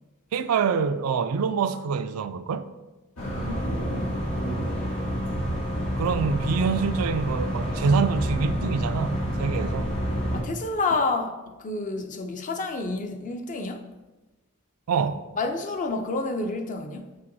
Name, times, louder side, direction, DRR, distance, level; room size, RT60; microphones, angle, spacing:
voice 1, 0.3-2.7 6.0-9.9 14.9-15.3, right 5 dB, 75° right, 0.4 m, -25 dB
sound 1, 3.2-10.4, equal, 75° left, 1.4 m, -28 dB
voice 2, 3.2-4.3 10.3-13.9 15.3-17.1, left 3 dB, 35° left, 0.5 m, -29 dB
7.7 x 5.5 x 2.7 m
head